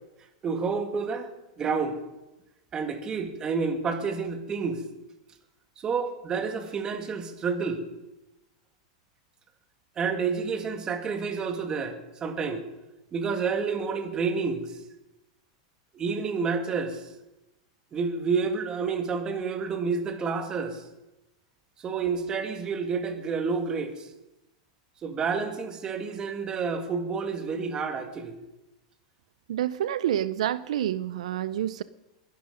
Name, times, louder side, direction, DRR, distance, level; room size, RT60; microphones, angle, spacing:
voice 1, 0.4-1.3 1.6-2.0 2.7-4.8 5.8-7.8 10.0-12.7 13.1-14.8 15.9-17.1 17.9-20.8 21.8-24.1 25.0-28.3, right 5 dB, 20° right, 6 dB, 2.0 m, -29 dB
voice 2, 29.5-31.8, right 11 dB, 80° right, 15 dB, 0.6 m, -28 dB
21.5 x 11.5 x 5.2 m, 1.0 s
supercardioid pair, 145°, 4 cm